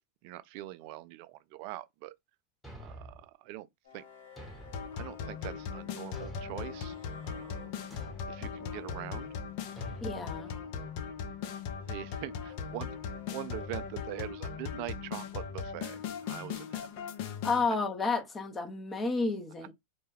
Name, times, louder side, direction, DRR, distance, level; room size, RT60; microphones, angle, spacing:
voice 1, 0.2-2.1 2.8-3.7 3.9-4.0 4.9-7.0 7.2-7.7 8.3-9.4 10.5-10.9 11.9-13.0 13.3-16.9, right 16 dB, 55° right, 0.3 m, -43 dB
Thump thud, 2.6-3.3 4.4-4.9 6.1-6.7 7.9-8.3 9.8-10.1, right 2 dB, 5° left, 1.1 m, -47 dB
sound 1, 3.8-14.3, left 8 dB, 75° left, 1.1 m, -56 dB
sound 2, 4.7-17.7, left 7 dB, 55° left, 0.6 m, -39 dB
voice 2, 10.0-10.5 17.4-19.7, left 4 dB, 20° left, 0.7 m, -31 dB
2.2 x 2.2 x 3.2 m
hypercardioid pair, 105°, 0 cm